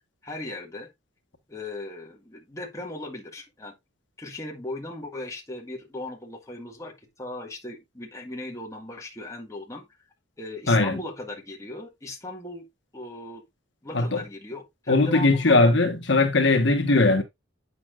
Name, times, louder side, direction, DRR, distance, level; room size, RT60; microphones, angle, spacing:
voice 1, 0.2-0.9 1.5-3.8 4.2-9.8 10.4-12.7 12.9-13.4 13.8-15.7 16.9-17.0, left 2 dB, 15° left, 1.8 m, -38 dB
voice 2, 10.7-11.0 13.9-14.2 14.9-17.2, left 2 dB, 65° left, 1.4 m, -20 dB
8.6 x 7.1 x 2.5 m
head